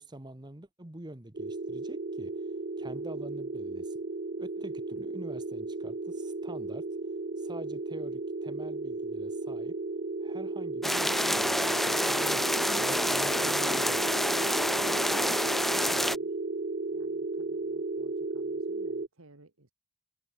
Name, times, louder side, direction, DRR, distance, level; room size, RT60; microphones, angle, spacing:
voice 1, 0.0-2.4 2.8-4.0 4.4-6.9 7.4-9.8 10.2-14.2, right 1 dB, 20° right, 1.1 m, -46 dB
sound 1, 1.3-19.1, right 3 dB, 45° right, 0.8 m, -34 dB
sound 2, 10.8-16.2, equal, ahead, 0.3 m, -28 dB
voice 2, 15.0-16.4 16.9-19.7, right 2 dB, 75° right, 1.9 m, -56 dB
head